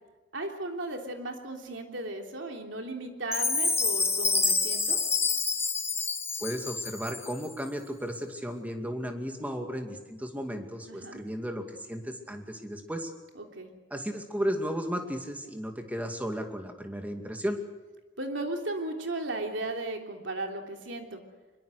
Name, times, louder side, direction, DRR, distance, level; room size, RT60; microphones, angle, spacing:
voice 1, 0.3-5.0 10.9-11.2 13.3-13.7 18.2-21.2, right 2 dB, 75° right, 3 dB, 3.3 m, -36 dB
Chime, 3.3-7.5, left 4 dB, 15° left, 1.3 m, -28 dB
voice 2, 6.4-13.1 13.9-17.6, equal, 10° right, 5 dB, 2.4 m, -34 dB
24.0 x 22.5 x 6.7 m, 1.2 s
head